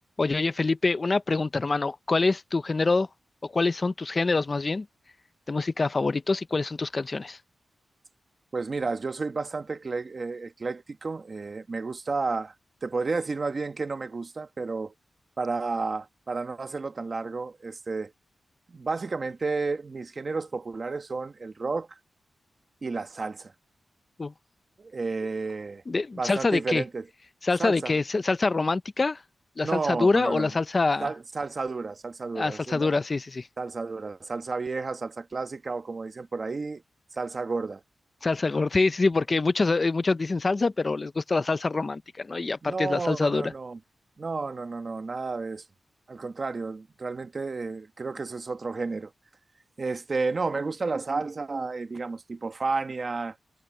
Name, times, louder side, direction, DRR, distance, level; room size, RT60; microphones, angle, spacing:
voice 1, 0.2-3.1 3.4-4.9 5.5-7.4 24.2-24.3 25.9-26.8 27.4-29.2 29.6-31.1 32.3-33.5 38.2-43.5, left 3 dB, 30° left, 0.5 m, -25 dB
voice 2, 8.5-12.5 12.8-14.9 15.4-18.1 18.7-22.0 22.8-23.5 24.8-25.8 26.2-27.0 27.6-27.9 29.6-30.5 31.0-32.9 33.6-36.8 37.1-37.8 42.6-43.8 44.2-45.6 46.1-49.1 49.8-53.4, right 4 dB, 35° right, 1.4 m, -31 dB
wide cardioid pair, 135°, 0 cm